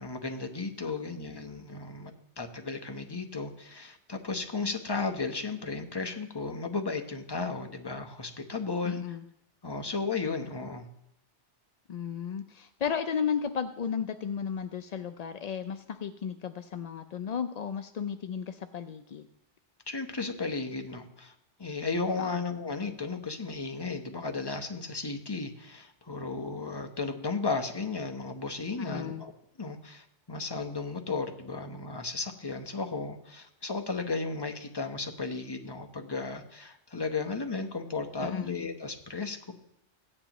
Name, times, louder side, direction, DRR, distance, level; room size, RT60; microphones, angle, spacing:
voice 1, 0.0-9.0 9.6-10.9 19.9-29.3 29.6-39.5, left 4 dB, 25° left, 5 dB, 0.9 m, -34 dB
voice 2, 8.9-9.2 11.9-19.3 22.2-22.3 28.8-29.2 38.2-38.6, left 7 dB, 60° left, 9 dB, 0.4 m, -34 dB
16.0 x 9.7 x 3.0 m, 0.77 s
omnidirectional pair, 1.2 m